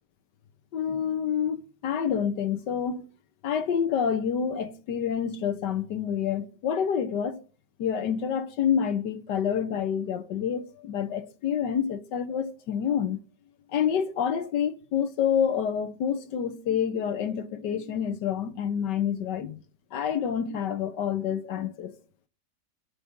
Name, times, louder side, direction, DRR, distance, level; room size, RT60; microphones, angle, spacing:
voice 1, 0.7-3.1 3.4-7.4 7.8-13.2 13.7-19.6 19.9-22.0, left 8 dB, 75° left, 1.6 m, -28 dB
23.5 x 8.3 x 3.7 m
omnidirectional pair, 1.9 m